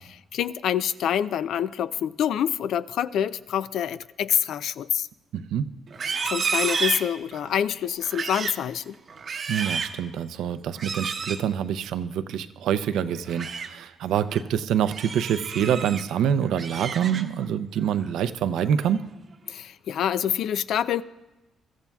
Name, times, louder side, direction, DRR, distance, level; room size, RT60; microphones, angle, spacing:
voice 1, 0.3-5.1 6.2-9.0 19.5-21.0, left 9 dB, 75° left, 0.4 m, -26 dB
voice 2, 5.3-5.7 9.5-19.0, right 9 dB, 80° right, 0.5 m, -26 dB
Livestock farm animals working animals, 5.9-7.5 8.0-8.6 9.1-10.0 10.7-11.4 13.1-13.7 14.1-14.4 14.9-16.0 16.4-17.5 17.8-18.2 18.6-19.0, right 5 dB, 50° right, 0.8 m, -31 dB
22.0 x 13.5 x 2.3 m
cardioid pair, 90°, 0 cm